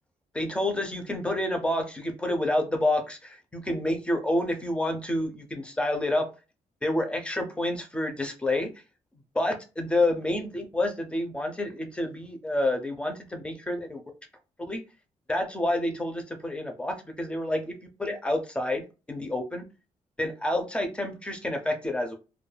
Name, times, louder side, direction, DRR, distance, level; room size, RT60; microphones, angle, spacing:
voice 1, 0.3-6.3 6.8-8.7 9.3-14.0 14.7-14.8 15.3-19.6 20.2-22.1, left 1 dB, 10° left, 0.4 m, -28 dB
2.2 x 2.2 x 3.1 m
wide cardioid pair, 170°, 13 cm